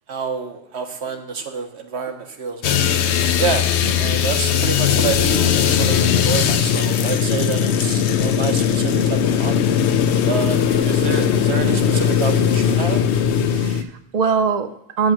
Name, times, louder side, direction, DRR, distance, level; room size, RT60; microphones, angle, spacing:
voice 1, 0.1-2.8 3.4-3.6 4.0-9.6 10.2-13.0, right 5 dB, 75° right, 5 dB, 1.3 m, -28 dB
sound 1, 2.6-13.8, left 8 dB, 90° left, 0.9 m, -19 dB
voice 2, 3.8-4.1 6.3-6.4 11.6-11.8 13.5-15.1, right 5 dB, 45° right, 8 dB, 0.6 m, -23 dB
6.4 x 6.0 x 7.4 m, 0.79 s
omnidirectional pair, 1.1 m